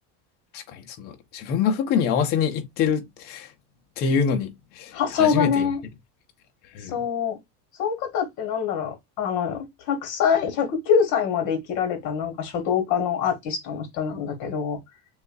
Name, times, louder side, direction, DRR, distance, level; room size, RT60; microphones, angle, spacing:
voice 1, 0.5-3.5 4.0-5.7 6.7-6.9, left 7 dB, 25° left, 0.4 m, -25 dB
voice 2, 4.9-5.8 6.9-7.4 7.8-14.8, left 7 dB, 40° left, 1.5 m, -25 dB
6.5 x 2.3 x 2.5 m
cardioid pair, 180°, 46 cm